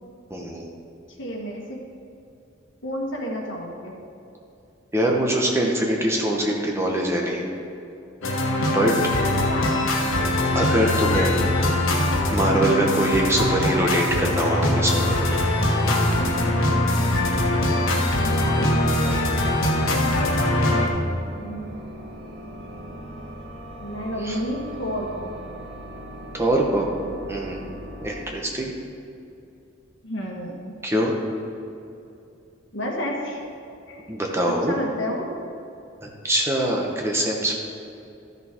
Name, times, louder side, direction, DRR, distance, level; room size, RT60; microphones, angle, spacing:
voice 1, 0.3-0.7 4.9-7.4 8.6-8.9 10.5-11.4 12.3-15.4 19.0-19.4 24.2-24.4 26.3-26.9 27.3-28.7 30.8-31.1 34.1-34.7 36.0-37.5, right 1 dB, 15° right, -1 dB, 1.0 m, -23 dB
voice 2, 1.2-1.8 2.8-3.9 9.5-9.8 18.2-18.8 21.4-22.0 23.8-25.3 30.0-30.7 32.7-33.4 33.9-34.1 34.4-35.3, equal, 65° left, 0 dB, 1.6 m, -31 dB
sound 1, 8.2-20.9, left 1 dB, 85° left, 1.3 m, -22 dB
sound 2, 15.9-28.2, equal, 75° right, 2.2 m, -39 dB
13.0 x 6.9 x 4.4 m, 2.7 s
head